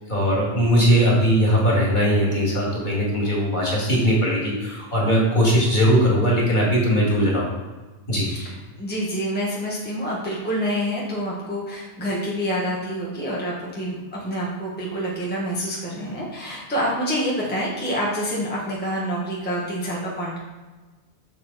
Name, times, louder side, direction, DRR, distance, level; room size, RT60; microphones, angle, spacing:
voice 1, 0.1-7.5 8.1-8.3, equal, 40° left, -4 dB, 2.4 m, -19 dB
voice 2, 8.8-20.4, equal, 10° left, -5 dB, 1.4 m, -27 dB
6.9 x 6.6 x 4.1 m, 1.3 s
omnidirectional pair, 1.2 m